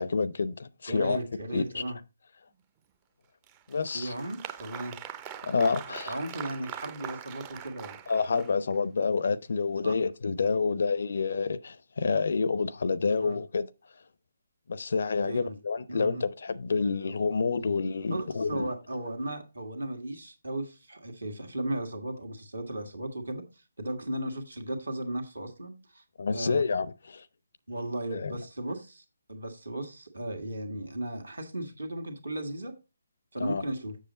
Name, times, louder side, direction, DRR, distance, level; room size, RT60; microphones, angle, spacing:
voice 1, 0.0-1.2 1.5-1.8 3.7-4.1 5.4-6.2 8.1-13.7 14.7-18.7 26.2-27.2 28.1-28.4 33.4-33.6, left 4 dB, 55° left, 0.5 m, -28 dB
voice 2, 0.9-2.0 3.9-5.0 5.9-8.0 9.8-9.9 13.2-13.4 15.2-15.6 15.9-16.2 18.1-23.4 23.8-26.0 26.3-26.6 27.7-32.8 33.3-34.0, right 1 dB, 75° right, 1.8 m, -36 dB
Applause, 3.4-8.8, right 9 dB, 20° right, 0.5 m, -42 dB
7.4 x 6.6 x 4.0 m
figure-of-eight pair, 145°, 0 cm